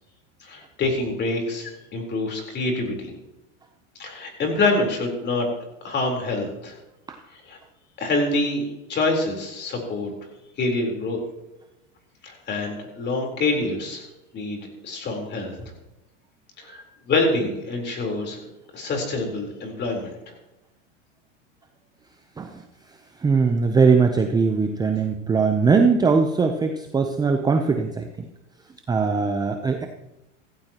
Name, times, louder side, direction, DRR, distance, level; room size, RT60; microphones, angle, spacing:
voice 1, 0.4-3.1 4.0-5.5 5.8-6.8 7.3-7.6 8.0-8.6 8.9-10.1 10.6-11.2 12.2-14.0 14.3-14.6 14.8-15.5 16.6-16.8 17.1-18.4 18.7-20.2, left 2 dB, 30° left, 2 dB, 4.0 m, -26 dB
voice 2, 23.2-28.3 28.9-29.9, right 5 dB, 10° right, 5 dB, 0.7 m, -21 dB
16.0 x 15.5 x 3.0 m, 0.96 s
supercardioid pair, 130°, 37 cm